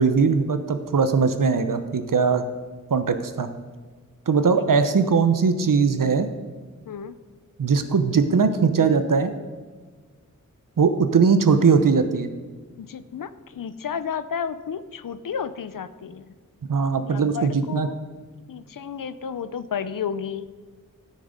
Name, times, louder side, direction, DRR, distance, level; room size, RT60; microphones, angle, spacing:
voice 1, 0.0-2.4 2.9-3.5 4.3-6.3 7.6-9.3 10.8-12.3 16.7-17.9, right 5 dB, 75° right, 9 dB, 0.9 m, -20 dB
voice 2, 12.8-16.2 17.1-18.0 18.5-20.5, left 7 dB, 85° left, 13 dB, 0.6 m, -32 dB
13.0 x 6.5 x 5.2 m, 1.4 s
wide cardioid pair, 65°, 32 cm